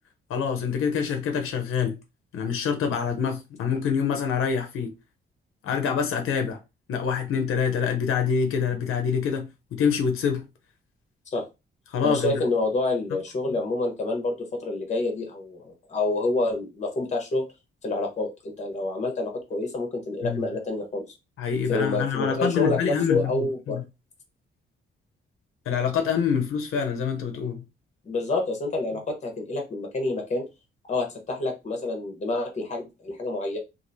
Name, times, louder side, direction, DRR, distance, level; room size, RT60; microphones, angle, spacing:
voice 1, 0.3-2.0 2.3-4.9 5.6-6.6 6.9-10.5 11.9-12.3 20.2-20.4 21.4-23.8 25.7-27.6, left 6 dB, 80° left, 0.7 m, -26 dB
voice 2, 12.0-17.4 17.8-21.0 21.7-23.8 28.0-30.4 30.9-33.6, left 2 dB, 35° left, 1.0 m, -28 dB
3.0 x 2.6 x 2.6 m
cardioid pair, 130°, 21 cm